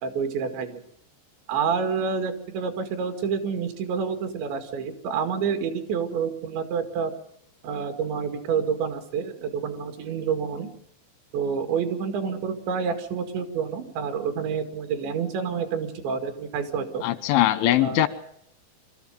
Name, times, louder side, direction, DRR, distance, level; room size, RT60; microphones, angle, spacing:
voice 1, 0.0-0.8 1.5-7.1 7.6-10.7 11.3-17.0 17.8-18.0, right 6 dB, 75° right, 7 dB, 4.4 m, -28 dB
voice 2, 17.0-18.1, left 14 dB, 90° left, 12 dB, 3.7 m, -21 dB
25.5 x 13.5 x 9.2 m, 0.70 s
omnidirectional pair, 5.3 m